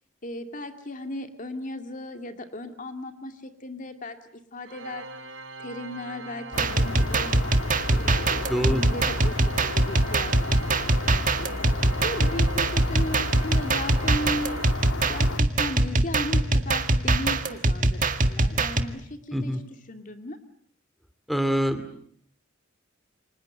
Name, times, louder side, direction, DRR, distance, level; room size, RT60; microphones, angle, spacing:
voice 1, 0.2-4.2 4.5-5.1 5.6-7.4 7.9-11.5 12.0-14.6 15.1-19.6 19.9-20.4, left 1 dB, 45° left, 7 dB, 2.4 m, -36 dB
Organ, 4.6-15.4, right 2 dB, 85° right, 4.0 m, -41 dB
sound 1, 6.5-15.4, left 2 dB, 85° left, 1.7 m, -34 dB
sound 2, 6.5-18.8, right 2 dB, 45° right, 1.8 m, -23 dB
voice 2, 8.5-8.8 19.3-19.6 21.3-22.0, equal, ahead, 11 dB, 2.5 m, -25 dB
29.5 x 25.5 x 7.9 m, 0.63 s
head